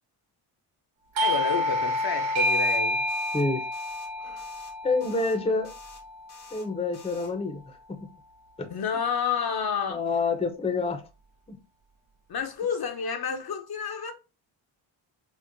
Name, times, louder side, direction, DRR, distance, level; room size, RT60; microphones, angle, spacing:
voice 1, 1.2-3.1 4.2-4.4 8.7-10.0 12.3-14.1, left 6 dB, 50° left, 0.7 m, -30 dB
Doorbell, 1.2-6.4, left 1 dB, 70° right, 0.6 m, -28 dB
sound 1, 2.4-2.8 3.1-3.4 3.7-4.1 4.4-4.7 5.0-5.4 5.6-6.0 6.3-6.7 6.9-7.3, left 3 dB, 85° left, 1.0 m, -50 dB
voice 2, 3.3-3.6 4.8-5.7 6.5-7.6 7.9-8.1 8.6-8.7 9.9-11.0 11.5-11.6, left 3 dB, 10° left, 0.6 m, -27 dB
4.5 x 2.1 x 2.5 m
supercardioid pair, 55°, 49 cm